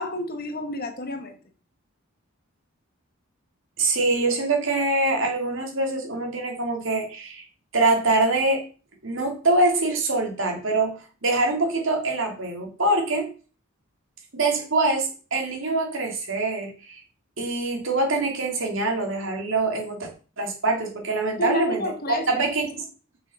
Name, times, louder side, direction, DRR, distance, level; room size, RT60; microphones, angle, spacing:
voice 1, 0.0-1.4 21.4-22.7, left 2 dB, 45° left, 1.4 m, -31 dB
voice 2, 3.8-7.4 7.7-8.7 9.0-13.3 14.3-17.0 17.4-20.1 20.4-22.8, right 2 dB, 65° right, 2.5 m, -24 dB
6.5 x 6.0 x 5.5 m
head